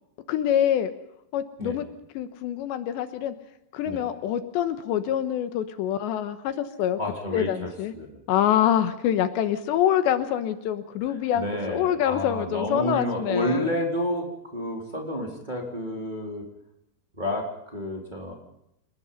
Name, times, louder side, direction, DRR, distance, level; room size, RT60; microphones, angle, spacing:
voice 1, 0.3-0.9 1.3-1.9 2.2-3.3 3.7-7.0 7.3-7.9 8.3-13.7, left 10 dB, 80° left, 10 dB, 3.3 m, -25 dB
voice 2, 7.0-8.2 11.1-14.3 14.5-16.4 17.2-18.3, equal, 10° right, 0 dB, 3.2 m, -30 dB
27.0 x 20.0 x 5.6 m, 0.80 s
omnidirectional pair, 5.3 m